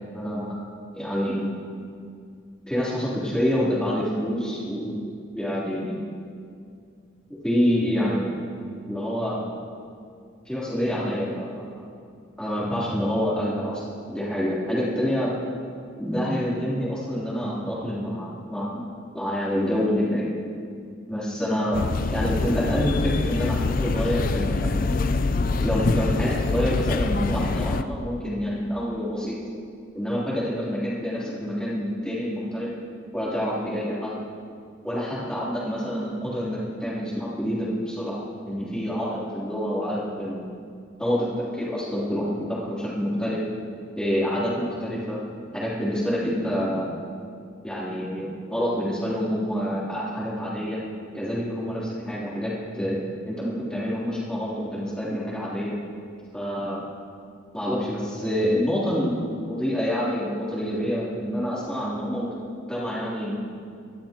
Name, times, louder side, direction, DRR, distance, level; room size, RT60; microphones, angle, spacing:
voice 1, 0.1-0.6 0.9-1.5 2.6-5.0 5.3-6.0 7.4-8.3 8.9-9.4 10.4-11.7 12.4-15.4 16.0-18.8 19.1-20.3 21.1-21.8 22.1-25.0 25.6-29.3 29.9-32.7 33.1-34.2 34.8-40.4 41.0-43.4 43.9-45.2 45.5-46.9 47.6-50.8 51.1-55.7 56.3-56.8 57.5-62.3 62.7-63.4, equal, 5° left, -8 dB, 3.2 m, -27 dB
sound 1, 21.7-27.8, left 3 dB, 45° left, 0.4 m, -25 dB
23.5 x 12.5 x 3.0 m, 2.3 s
head